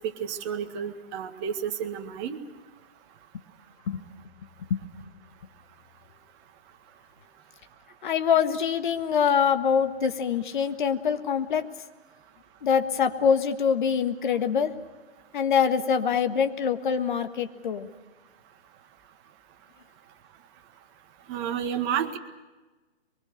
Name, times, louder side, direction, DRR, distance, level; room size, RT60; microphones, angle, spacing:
voice 1, 0.2-2.4 21.3-22.2, right 8 dB, 25° right, 6 dB, 1.8 m, -31 dB
voice 2, 8.0-11.6 12.6-14.7 15.3-17.9, left 7 dB, 50° left, 8 dB, 1.7 m, -24 dB
24.0 x 23.5 x 6.6 m, 1.2 s
figure-of-eight pair, 135°, 32 cm